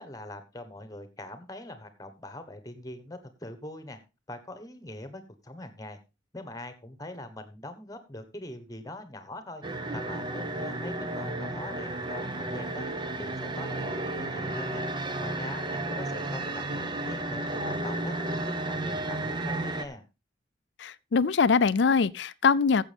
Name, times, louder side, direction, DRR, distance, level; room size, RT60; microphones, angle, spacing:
voice 1, 0.0-4.0 4.3-6.0 6.3-9.6 9.9-12.9 13.2-14.8 15.2-20.0, left 1 dB, 20° left, 1.2 m, -42 dB
sound 1, 9.6-19.9, right 2 dB, 25° right, 0.7 m, -33 dB
voice 2, 20.8-22.8, left 5 dB, 65° left, 0.4 m, -23 dB
14.5 x 7.5 x 3.4 m
head